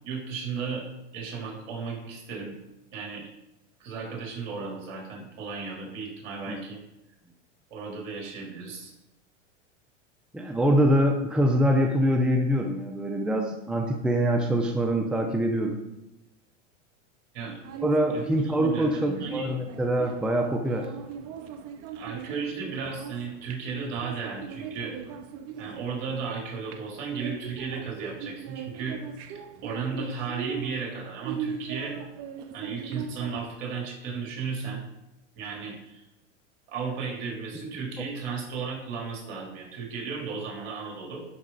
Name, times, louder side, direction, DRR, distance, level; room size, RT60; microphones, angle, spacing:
voice 1, 0.0-2.6 2.9-3.3 3.8-6.8 7.7-8.9 17.3-17.6 18.1-18.2 18.7-19.5 21.9-25.0 25.6-29.0 29.6-32.0 32.5-34.8 35.4-36.0 36.7-41.2, right 5 dB, 55° right, -1 dB, 3.6 m, -34 dB
voice 2, 10.3-15.8 17.8-20.9 38.0-38.1, equal, ahead, 4 dB, 0.6 m, -24 dB
sound 1, 17.4-33.4, right 7 dB, 40° right, 0.9 m, -40 dB
11.5 x 5.3 x 4.0 m, 0.92 s
hypercardioid pair, 115°, 38 cm